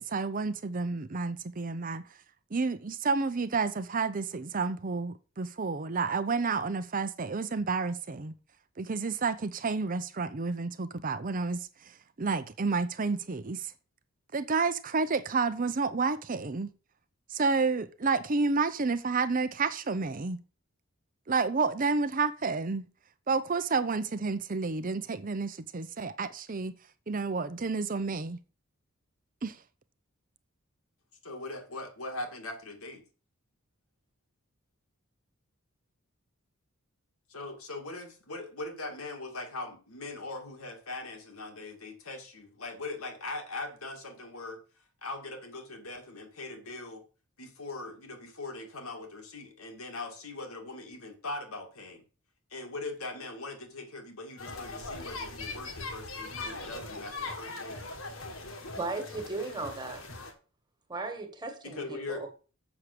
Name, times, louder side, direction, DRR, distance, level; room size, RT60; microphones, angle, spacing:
voice 1, 0.0-2.0 2.5-8.3 8.8-11.7 12.2-13.7 14.3-16.7 17.3-20.4 21.3-22.9 23.3-26.7 27.1-28.4 29.4-29.6, right 4 dB, 40° right, 0.6 m, -30 dB
voice 2, 31.2-33.0 37.3-44.6 45.0-47.0 47.4-52.0 52.5-57.8 61.6-62.3, left 2 dB, 85° left, 2.4 m, -41 dB
sound 1, 54.4-60.3, left 3 dB, 70° left, 1.8 m, -40 dB
voice 3, 58.8-60.1 60.9-62.3, right 3 dB, 20° right, 1.7 m, -36 dB
7.3 x 6.3 x 6.8 m
head